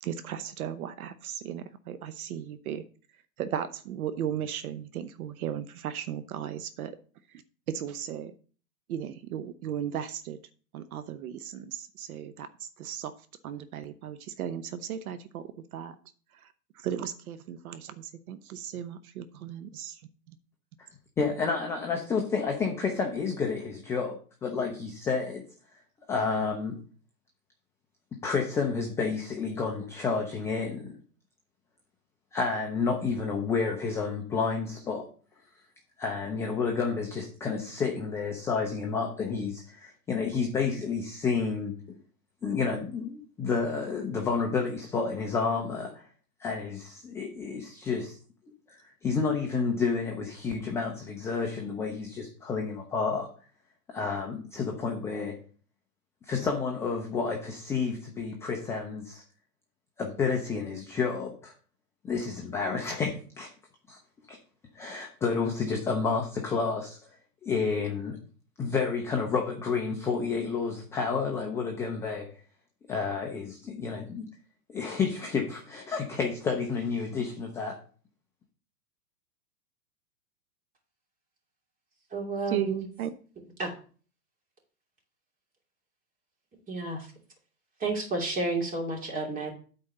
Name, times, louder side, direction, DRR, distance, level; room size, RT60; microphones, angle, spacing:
voice 1, 0.0-2.8 3.4-7.0 7.3-7.4 7.7-8.3 8.9-10.4 10.7-13.1 13.4-16.0 16.4-20.0 82.5-83.1, right 9 dB, 65° right, 11 dB, 0.8 m, -36 dB
voice 2, 21.2-25.4 26.1-26.8 28.1-30.9 32.3-35.1 36.0-42.0 42.4-46.1 46.4-48.2 48.7-53.3 53.9-55.4 56.2-59.2 60.0-61.5 62.0-63.5 63.9-64.0 64.3-64.4 64.7-67.0 67.4-68.2 68.6-72.3 72.9-74.3 74.7-77.8, left 5 dB, 5° left, 1 dB, 0.4 m, -30 dB
voice 3, 82.1-82.9 83.6-83.7 86.7-87.1 87.8-89.5, right 3 dB, 15° right, 0 dB, 2.7 m, -31 dB
8.7 x 4.1 x 6.6 m, 0.41 s
hypercardioid pair, 125°, 47 cm